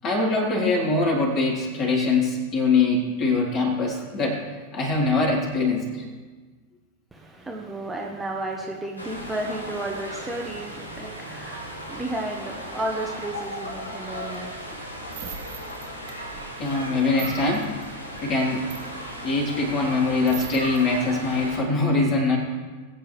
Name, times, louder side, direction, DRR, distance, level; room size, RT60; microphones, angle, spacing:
voice 1, 0.0-4.4 4.7-6.1 14.3-14.5 16.6-17.7 18.2-18.7 19.2-22.4, left 3 dB, 35° left, -3 dB, 3.8 m, -23 dB
voice 2, 7.1-14.7, right 1 dB, 10° right, -1 dB, 1.2 m, -33 dB
sound 1, 9.0-21.6, equal, 80° left, 2.1 m, -36 dB
sound 2, 14.3-20.8 21.2-21.5, right 8 dB, 45° right, 1.5 m, -42 dB
21.0 x 9.2 x 3.4 m, 1.4 s
figure-of-eight pair, 90°, 0 cm